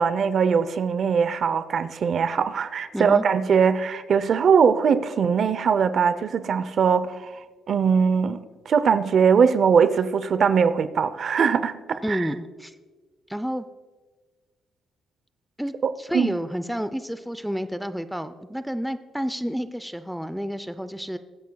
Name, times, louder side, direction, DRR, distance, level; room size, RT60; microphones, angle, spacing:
voice 1, 0.0-7.3 7.7-8.4 8.7-12.3 16.1-16.3, right 6 dB, 55° right, 0.7 m, -21 dB
voice 2, 2.9-3.2 12.0-12.7 13.3-13.7 15.6-21.2, equal, ahead, 0.5 m, -30 dB
23.5 x 8.3 x 2.3 m
cardioid pair, 90°, 0 cm